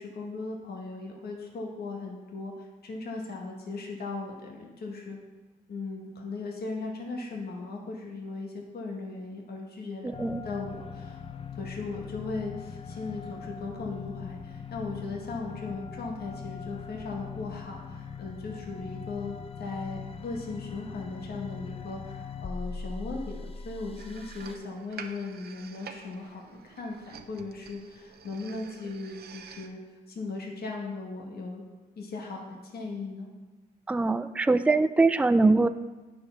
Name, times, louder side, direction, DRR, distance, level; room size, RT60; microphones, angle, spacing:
voice 1, 0.0-5.2 5.7-10.1 10.4-11.2 11.5-29.8 30.1-31.6 32.0-33.3, left 3 dB, 60° left, 0 dB, 1.6 m, -38 dB
voice 2, 10.0-10.4 33.9-35.7, right 3 dB, 5° right, 12 dB, 0.4 m, -22 dB
sound 1, 10.1-24.6, left 6 dB, 30° left, 0.6 m, -41 dB
sound 2, 24.0-29.7, right 7 dB, 60° right, 0.7 m, -48 dB
8.6 x 4.7 x 5.7 m, 1.2 s
supercardioid pair, 60°, 18 cm